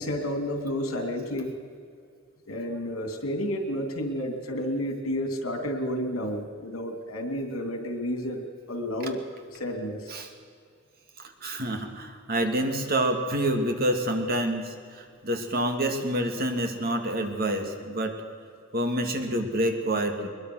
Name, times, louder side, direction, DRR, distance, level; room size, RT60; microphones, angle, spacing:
voice 1, 0.0-1.6 2.5-9.2 9.5-10.1, equal, 90° left, 5 dB, 3.0 m, -31 dB
voice 2, 11.4-18.2 18.7-20.3, right 1 dB, 45° right, 4 dB, 2.3 m, -27 dB
22.0 x 21.5 x 6.4 m, 2.2 s
head